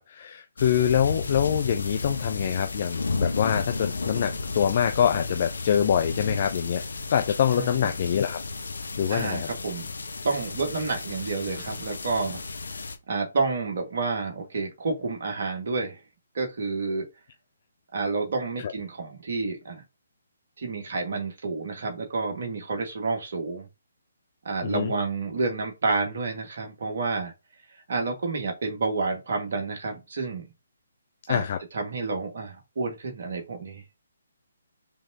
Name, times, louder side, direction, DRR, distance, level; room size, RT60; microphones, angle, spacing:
voice 1, 0.0-6.8 7.1-8.4 9.0-9.5 18.6-18.7 24.6-24.9 31.3-31.6, left 9 dB, 40° left, 0.5 m, -25 dB
sound 1, 0.6-13.0, left 3 dB, 70° left, 0.9 m, -33 dB
voice 2, 7.5-7.9 9.1-9.9 10.2-12.4 13.1-16.0 16.3-17.1 17.9-19.8 20.6-23.7 24.5-27.3 27.9-30.5 31.3-31.5 31.7-33.8, right 3 dB, 50° right, 1.8 m, -29 dB
5.2 x 3.5 x 2.8 m
figure-of-eight pair, 140°, 0 cm